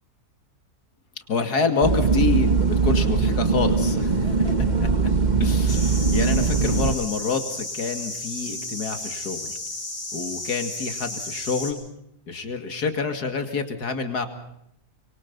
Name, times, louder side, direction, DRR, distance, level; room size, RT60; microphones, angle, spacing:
voice 1, 1.3-5.1 5.4-9.6 10.1-11.8 12.3-14.3, left 4 dB, 85° left, 7 dB, 2.9 m, -27 dB
sound 1, 1.8-7.0, right 4 dB, 30° right, 1.4 m, -21 dB
sound 2, 5.7-11.7, left 2 dB, 65° left, 7.5 m, -33 dB
25.0 x 23.5 x 5.5 m, 0.78 s
omnidirectional pair, 1.6 m